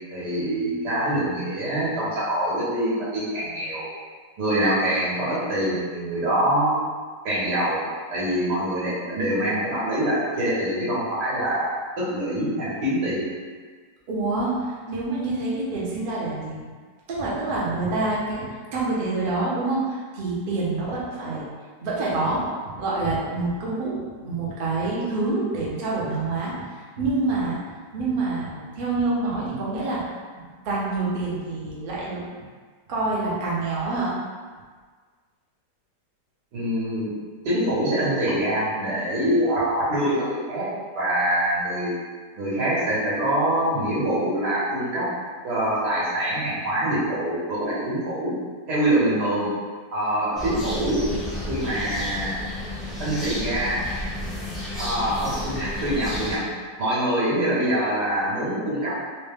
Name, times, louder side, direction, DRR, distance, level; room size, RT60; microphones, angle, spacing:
voice 1, 0.1-3.9 4.4-6.8 7.2-7.8 8.1-11.7 12.0-13.3 36.5-37.1 37.5-40.7 41.0-41.9 42.4-45.1 45.4-48.3 48.7-49.5 49.9-51.1 51.5-52.4 53.0-53.9 54.8-56.4 56.8-59.0, right 1 dB, 70° right, -9 dB, 1.8 m, -24 dB
voice 2, 14.1-16.6 17.1-21.4 21.8-27.6 27.9-32.2 32.9-34.1, right 3 dB, 50° right, -6 dB, 0.6 m, -27 dB
sound 1, 50.4-56.4, left 1 dB, ahead, 0.5 m, -32 dB
4.1 x 2.2 x 3.4 m, 1.5 s
omnidirectional pair, 1.8 m